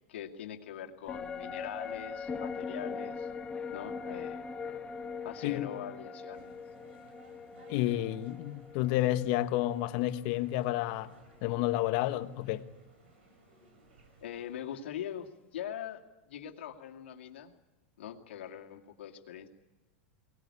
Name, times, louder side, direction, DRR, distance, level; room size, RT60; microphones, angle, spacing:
voice 1, 0.1-3.3 3.7-4.4 5.2-6.5 14.2-17.5 18.0-19.5, left 10 dB, 90° left, 2.5 m, -42 dB
sound 1, 1.1-10.6 10.9-11.0, left 5 dB, 15° left, 1.3 m, -41 dB
sound 2, 6.3-14.5, right 3 dB, 90° right, 6.1 m, -60 dB
voice 2, 7.7-11.2 11.4-12.7, left 15 dB, 50° left, 1.3 m, -30 dB
23.5 x 19.5 x 9.8 m
supercardioid pair, 140°, 6 cm